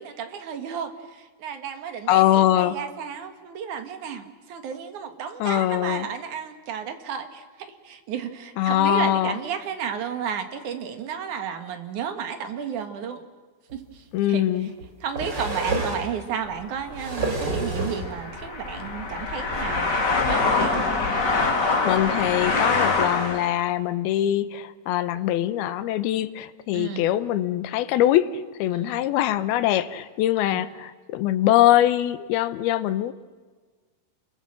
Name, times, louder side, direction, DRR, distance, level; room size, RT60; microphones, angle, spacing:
voice 1, 0.0-13.2 13.7-14.4 15.0-20.8 26.7-27.1 28.7-29.0 30.5-30.6, right 7 dB, 55° right, 7 dB, 2.6 m, -33 dB
voice 2, 2.1-2.8 5.4-6.1 8.6-9.4 14.1-14.7 21.8-33.1, left 13 dB, 75° left, 12 dB, 2.6 m, -22 dB
sound 1, 13.7-13.8 14.8-16.1 16.7-18.1 19.1-19.2 19.5-19.6, right 2 dB, 25° right, 4.1 m, -29 dB
sound 2, 16.4-23.6, left 3 dB, 30° left, 2.8 m, -25 dB
29.5 x 23.0 x 7.7 m, 1.4 s
omnidirectional pair, 4.9 m